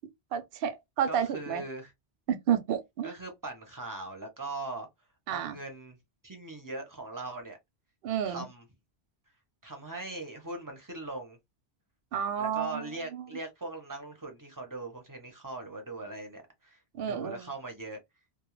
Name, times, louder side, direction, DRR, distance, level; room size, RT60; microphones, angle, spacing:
voice 1, 0.3-1.6 2.3-3.1 5.3-5.6 8.0-8.5 12.1-13.3 16.9-17.5, right 9 dB, 65° right, 0.7 m, -31 dB
voice 2, 1.1-1.9 3.0-4.9 5.3-6.0 6.2-7.6 8.2-8.6 9.6-11.4 12.4-16.8 17.1-18.0, right 2 dB, 25° right, 0.6 m, -40 dB
2.3 x 2.0 x 3.0 m
omnidirectional pair, 1.1 m